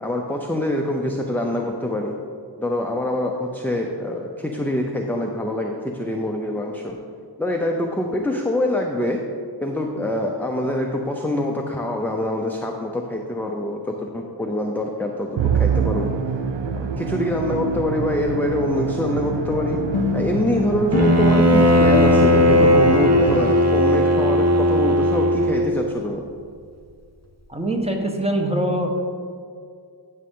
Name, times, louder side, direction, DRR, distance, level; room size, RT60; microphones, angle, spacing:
voice 1, 0.0-2.1 2.6-7.0 7.4-9.2 9.6-16.1 16.7-19.8 20.1-26.2, left 1 dB, 5° left, 1 dB, 0.7 m, -25 dB
Musical instrument, 15.4-23.9, right 6 dB, 75° right, 0.6 m, -26 dB
sound 1, 19.9-24.6, left 7 dB, 85° left, 0.7 m, -28 dB
Bowed string instrument, 20.9-25.8, equal, 35° right, 0.9 m, -17 dB
voice 2, 27.5-29.0, right 1 dB, 15° right, 1 dB, 1.2 m, -23 dB
11.0 x 6.4 x 3.8 m, 2.2 s
wide cardioid pair, 55°, 45 cm